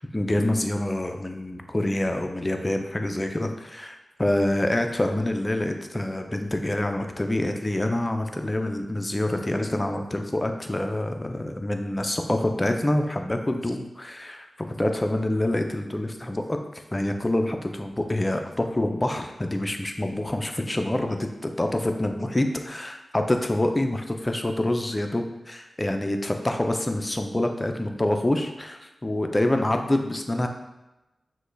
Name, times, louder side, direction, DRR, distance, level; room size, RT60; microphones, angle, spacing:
voice 1, 0.1-21.3 21.6-30.5, left 1 dB, 25° left, 5 dB, 0.5 m, -26 dB
5.9 x 2.3 x 3.3 m, 1.0 s
cardioid pair, 40°, 0 cm